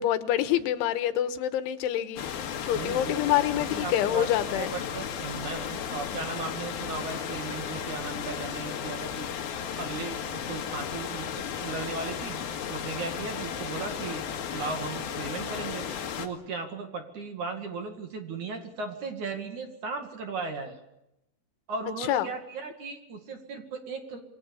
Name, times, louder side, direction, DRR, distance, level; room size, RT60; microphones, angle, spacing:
voice 1, 0.0-2.2 2.7-4.7 22.0-22.3, left 12 dB, 90° left, 11 dB, 3.7 m, -26 dB
sound 1, 2.2-16.3, left 8 dB, 60° left, 3.3 m, -34 dB
voice 2, 2.7-3.1 3.5-4.3 4.5-9.3 9.8-12.4 12.7-14.2 14.5-15.8 16.2-20.8 21.7-24.2, right 4 dB, 50° right, 5 dB, 3.0 m, -36 dB
27.0 x 22.5 x 7.1 m, 0.86 s
omnidirectional pair, 5.3 m